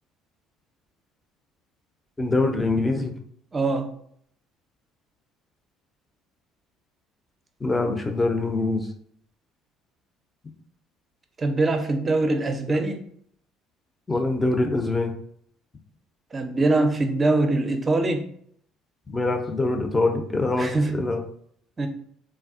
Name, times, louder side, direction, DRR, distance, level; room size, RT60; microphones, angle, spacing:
voice 1, 2.2-3.1 7.6-8.9 14.1-15.1 19.1-21.2, left 2 dB, 20° left, 0.6 m, -24 dB
voice 2, 3.5-3.9 11.4-13.0 16.3-18.3 20.6-21.0 21.8-21.9, right 2 dB, 25° right, 0.5 m, -23 dB
3.4 x 2.3 x 2.4 m
hypercardioid pair, 55°, 0 cm